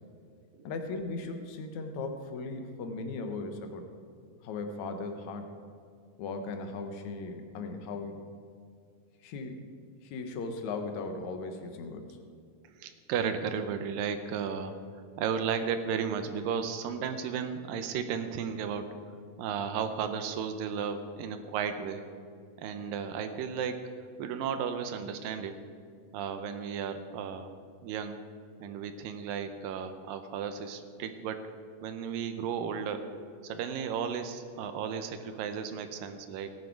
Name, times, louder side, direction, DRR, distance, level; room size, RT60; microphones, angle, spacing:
voice 1, 0.6-3.9 4.4-5.5 6.2-8.2 9.2-9.6 10.0-12.2, left 3 dB, 65° left, 5 dB, 2.2 m, -37 dB
voice 2, 12.8-14.8 15.2-18.9 19.4-22.0 22.6-23.9 24.2-25.6 26.1-27.5 27.8-28.3 28.6-31.5 31.8-33.0 33.4-36.5, right 7 dB, 80° right, 8 dB, 2.4 m, -34 dB
17.5 x 10.0 x 4.6 m, 2.3 s
omnidirectional pair, 4.1 m